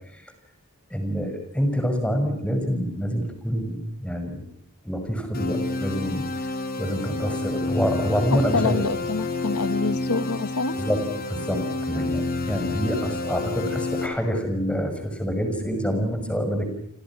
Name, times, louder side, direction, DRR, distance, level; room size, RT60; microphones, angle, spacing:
voice 1, 0.9-4.4 4.8-6.2 6.8-8.8 10.7-11.0 11.3-16.7, equal, 5° left, 6 dB, 6.3 m, -26 dB
sound 1, 5.3-14.1, left 3 dB, 45° left, 5.1 m, -29 dB
voice 2, 8.3-10.7, left 4 dB, 85° left, 12 dB, 1.4 m, -26 dB
30.0 x 26.5 x 6.1 m, 0.67 s
head